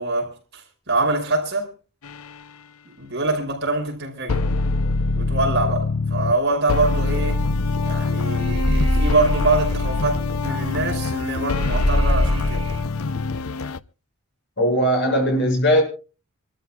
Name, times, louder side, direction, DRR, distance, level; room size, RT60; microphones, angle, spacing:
voice 1, 0.0-1.7 3.0-4.4 5.2-7.5 7.8-12.6, right 2 dB, 50° right, 5.4 m, -24 dB
sound 1, 2.0-2.3 4.3-6.4 6.7-13.8, left 3 dB, 75° left, 0.7 m, -24 dB
sound 2, 7.5-7.7 8.0-10.8 11.1-11.2 11.6-12.8, equal, 25° right, 1.3 m, -23 dB
voice 2, 14.6-15.8, equal, 55° left, 7.0 m, -19 dB
27.0 x 13.5 x 2.4 m
head